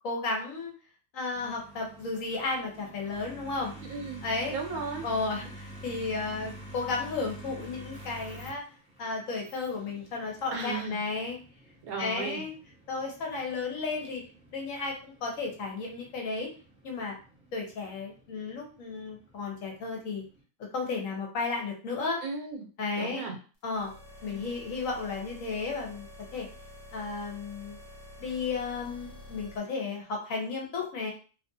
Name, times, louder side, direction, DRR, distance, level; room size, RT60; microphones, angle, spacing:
voice 1, 0.0-0.7 1.1-3.7 4.2-4.5 5.0-8.6 9.0-11.4 12.0-12.5 12.9-14.2 14.5-16.5 16.8-17.1 17.5-20.2 20.7-22.2 22.8-23.3 23.6-23.9 24.2-26.1 26.3-26.5 26.9-27.8 28.2-31.1, left 4 dB, 65° left, 0 dB, 1.1 m, -33 dB
sound 1, 1.3-20.4, right 1 dB, 5° right, 0.8 m, -49 dB
voice 2, 3.9-4.2 4.5-5.1 10.5-11.0 11.8-12.4 22.2-22.6 22.9-23.4 24.2-24.4, right 4 dB, 85° right, 2 dB, 1.2 m, -35 dB
sound 2, 23.6-29.6, left 1 dB, 45° left, 0.9 m, -48 dB
2.9 x 2.4 x 2.6 m, 0.38 s
omnidirectional pair, 1.5 m